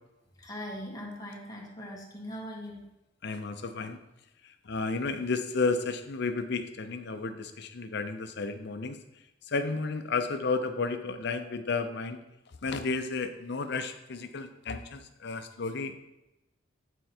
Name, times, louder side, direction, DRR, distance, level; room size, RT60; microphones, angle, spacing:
voice 1, 0.4-2.8, equal, 20° left, -2 dB, 1.6 m, -40 dB
voice 2, 3.2-4.0 4.4-9.0 9.4-12.2 12.6-16.1, left 4 dB, 60° left, 8 dB, 0.7 m, -32 dB
8.9 x 4.5 x 4.4 m, 0.94 s
head